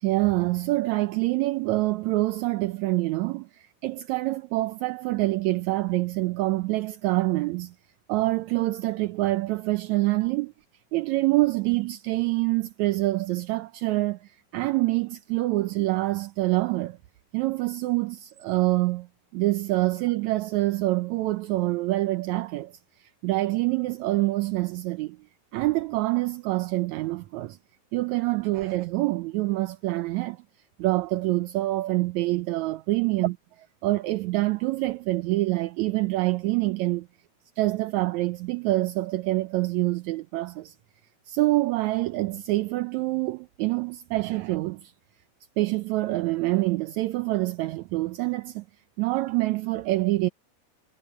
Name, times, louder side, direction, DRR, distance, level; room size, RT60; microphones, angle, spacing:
voice 1, 0.0-7.7 8.1-10.5 10.9-17.0 17.3-19.1 19.3-22.7 23.2-25.2 25.5-27.6 27.9-30.4 30.8-33.3 33.8-37.1 37.6-40.7 41.3-44.9 45.6-48.6 49.0-50.3, right 19 dB, 80° right, 1.9 m, -26 dB
omnidirectional pair, 3.5 m